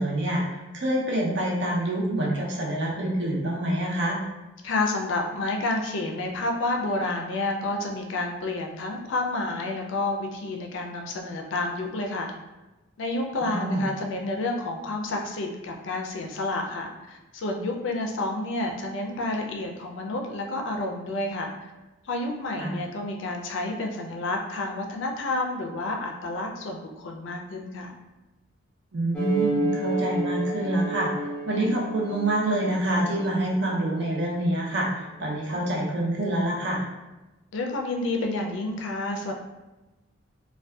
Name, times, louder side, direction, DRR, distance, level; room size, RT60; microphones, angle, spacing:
voice 1, 0.0-4.2 13.4-13.9 22.6-22.7 28.9-36.8, right 1 dB, 60° right, -2 dB, 0.5 m, -26 dB
voice 2, 4.6-12.3 13.0-21.5 22.1-28.0 37.5-39.3, left 2 dB, 70° left, 2 dB, 0.4 m, -30 dB
sound 1, 29.1-34.1, right 2 dB, 5° left, 0.4 m, -31 dB
2.5 x 2.2 x 2.2 m, 1.1 s
head